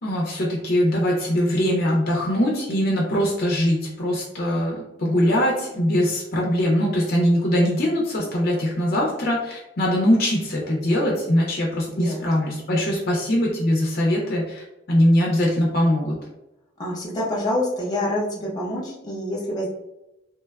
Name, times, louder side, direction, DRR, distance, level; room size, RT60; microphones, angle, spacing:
voice 1, 0.0-16.2, equal, 50° left, -3 dB, 0.5 m, -22 dB
voice 2, 11.9-12.3 16.8-19.7, left 1 dB, 20° left, -5 dB, 0.9 m, -27 dB
3.2 x 2.1 x 2.2 m, 0.95 s
head